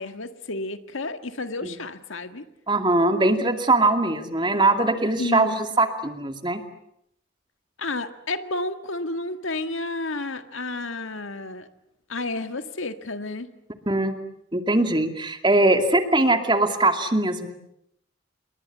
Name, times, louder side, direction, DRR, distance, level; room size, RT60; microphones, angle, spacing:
voice 1, 0.0-2.4 5.2-5.6 7.8-11.7 12.1-13.5, left 2 dB, 80° left, 9 dB, 1.8 m, -31 dB
voice 2, 2.7-5.5 5.8-6.6 13.9-14.1 14.5-17.5, right 2 dB, 25° right, 6 dB, 2.4 m, -21 dB
28.5 x 22.5 x 8.5 m, 0.76 s
head